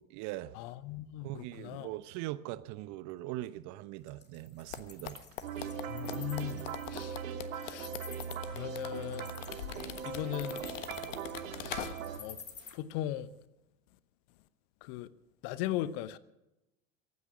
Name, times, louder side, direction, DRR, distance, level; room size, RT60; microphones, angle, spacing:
voice 1, 0.0-0.5 1.2-5.2, right 16 dB, 45° right, 0.9 m, -41 dB
voice 2, 0.6-1.9 5.9-7.2 7.5-7.9 8.5-9.3 10.0-10.6 11.6-11.9 12.2-12.4 12.7-13.3 14.8-15.1 15.4-16.2, left 13 dB, 50° left, 0.9 m, -38 dB
Wild animals, 4.1-12.7, left 7 dB, 25° left, 2.4 m, -50 dB
sound 1, 4.7-12.3 12.5-12.7, left 10 dB, 65° left, 1.4 m, -43 dB
sound 2, 5.4-12.2, right 7 dB, 70° right, 2.1 m, -40 dB
23.0 x 9.6 x 6.4 m
figure-of-eight pair, 80°, 41 cm